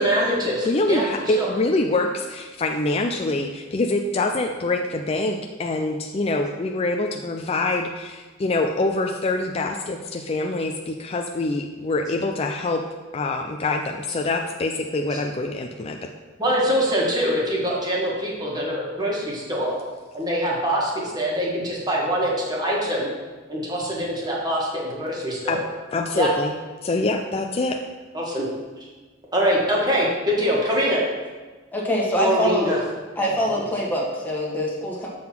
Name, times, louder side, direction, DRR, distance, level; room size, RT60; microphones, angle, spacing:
voice 1, 0.0-1.5 15.1-15.2 16.4-19.7 20.1-23.1 23.5-25.6 26.1-26.3 28.1-28.4 29.3-31.0 32.2-32.8, equal, 20° right, -4 dB, 1.6 m, -24 dB
voice 2, 0.6-12.8 13.1-16.1 25.5-25.6 25.9-26.5 26.8-27.8, left 2 dB, 30° left, 3 dB, 0.4 m, -25 dB
voice 3, 31.7-32.7 33.2-35.1, left 1 dB, 10° left, -4 dB, 1.3 m, -24 dB
7.6 x 3.8 x 5.8 m, 1.3 s
head